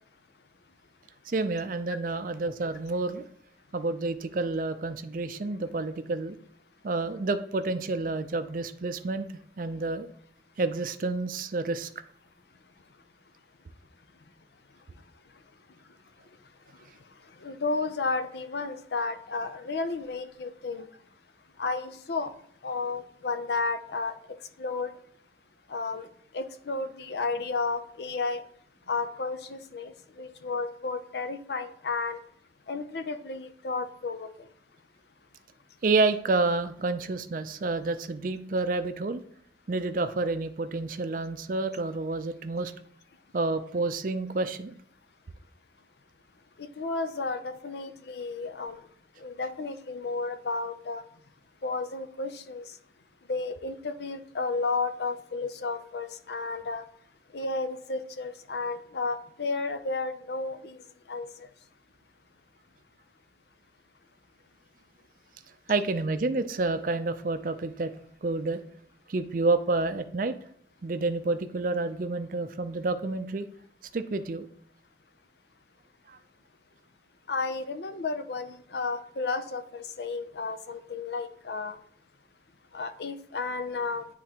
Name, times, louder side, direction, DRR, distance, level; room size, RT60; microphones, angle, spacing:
voice 1, 1.3-3.2 3.7-6.4 6.8-9.3 9.6-10.1 10.6-11.9 35.8-39.2 39.7-42.7 43.3-44.7 65.7-67.9 68.2-68.6 69.1-70.3 70.8-73.5 73.9-74.5 76.1-76.2, right 3 dB, 45° right, 10 dB, 0.4 m, -29 dB
voice 2, 17.4-20.9 21.6-22.3 22.6-24.1 24.6-24.9 25.7-26.1 26.3-28.4 28.9-32.2 32.7-34.5 46.6-48.8 49.2-51.0 51.6-52.6 53.3-56.8 57.3-60.8 61.1-61.3 77.3-81.8 82.7-84.1, left 3 dB, 65° left, 9 dB, 0.5 m, -32 dB
10.0 x 3.7 x 2.9 m, 0.66 s
head